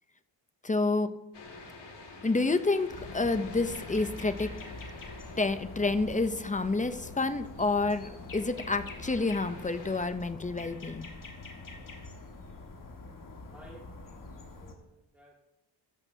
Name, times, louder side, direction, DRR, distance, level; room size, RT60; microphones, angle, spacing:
voice 1, 0.6-1.1 2.2-4.5 5.4-11.1, left 3 dB, 15° left, 10 dB, 0.5 m, -29 dB
sound 1, 1.3-10.0, left 3 dB, 60° left, 2.3 m, -49 dB
sound 2, 2.9-14.7, left 2 dB, 45° left, 1.6 m, -45 dB
voice 2, 13.5-15.5, right 1 dB, 5° right, -5 dB, 1.9 m, -55 dB
15.5 x 12.5 x 2.7 m, 0.93 s
wide cardioid pair, 135°, 47 cm